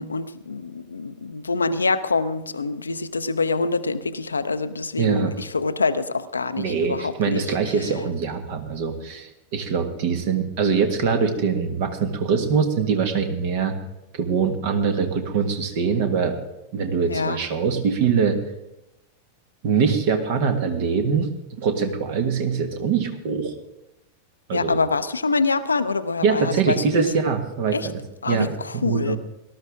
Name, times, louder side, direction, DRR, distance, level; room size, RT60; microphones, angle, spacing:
voice 1, 0.0-7.4 7.8-7.9 17.1-17.4 24.5-27.0 27.7-27.9 28.2-29.2, left 4 dB, 75° left, 12 dB, 0.6 m, -25 dB
voice 2, 5.0-5.3 6.6-13.8 14.1-16.4 16.7-18.4 19.6-23.5 24.5-24.8 26.2-27.9 28.3-29.2, right 6 dB, 50° right, 6 dB, 1.8 m, -23 dB
18.5 x 12.5 x 3.7 m, 0.92 s
figure-of-eight pair, 90°, 0 cm